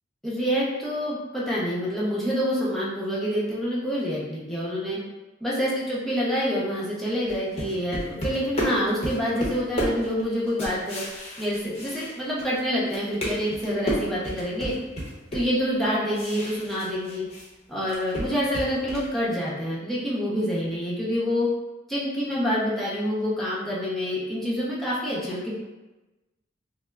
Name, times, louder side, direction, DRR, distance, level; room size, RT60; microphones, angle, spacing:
voice 1, 0.2-5.0 5.4-11.0 11.4-14.7 15.3-17.3 17.7-21.5 21.9-25.6, equal, ahead, -8 dB, 0.7 m, -27 dB
sound 1, 7.3-12.6 12.9-17.5 17.8-19.1, equal, 35° left, 0.8 m, -32 dB
5.5 x 2.0 x 2.3 m, 1.1 s
head